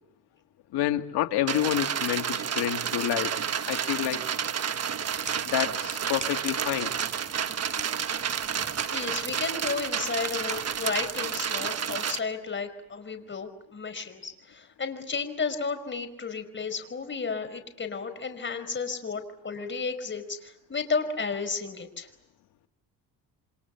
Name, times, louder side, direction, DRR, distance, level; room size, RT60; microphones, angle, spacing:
voice 1, 0.7-3.4 3.7-4.2 5.5-6.9, left 12 dB, 75° left, 5 dB, 2.4 m, -28 dB
sound 1, 1.5-12.2, right 7 dB, 40° right, 1.3 m, -30 dB
sound 2, 4.9-11.9, right 3 dB, 20° right, 3.8 m, -45 dB
voice 2, 8.5-22.1, left 5 dB, 30° left, 8 dB, 5.2 m, -33 dB
29.0 x 26.5 x 7.3 m, 0.77 s
cardioid pair, 105°, 39 cm